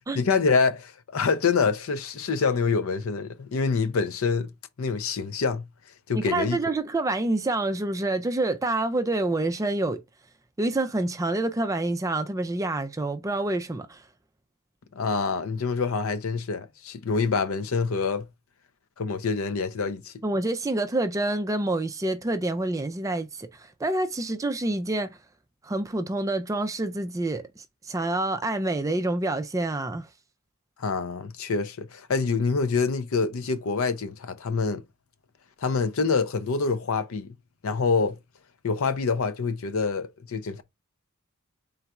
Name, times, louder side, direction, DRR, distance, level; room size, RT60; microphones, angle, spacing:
voice 1, 0.1-4.5 4.8-5.7 6.1-6.6 14.9-18.3 19.0-20.1 30.8-34.8 35.6-37.3 37.6-38.2 38.6-40.6, left 4 dB, 65° left, 0.5 m, -26 dB
voice 2, 6.1-10.0 10.6-14.0 20.2-25.2 25.6-30.1, right 2 dB, 15° right, 0.4 m, -27 dB
3.9 x 2.4 x 4.2 m
head